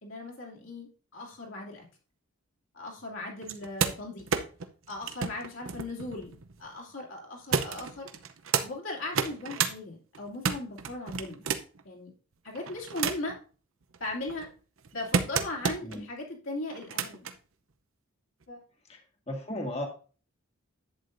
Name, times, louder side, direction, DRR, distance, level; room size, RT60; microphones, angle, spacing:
voice 1, 0.0-1.8 2.7-4.3 4.9-8.1 8.6-11.5 11.8-12.1 12.4-13.4 14.0-14.5 14.9-17.3 18.5-18.6, left 2 dB, 65° left, -2 dB, 2.8 m, -38 dB
sound 1, 3.4-6.7 7.5-8.7 9.1-9.7 10.1-11.8 12.5-13.4 13.9-16.0 16.7-17.3 18.4-18.5, right 6 dB, 70° right, 0.7 m, -31 dB
voice 2, 19.3-19.9, left 1 dB, 30° left, 2 dB, 1.6 m, -35 dB
11.0 x 8.5 x 2.6 m, 0.38 s
head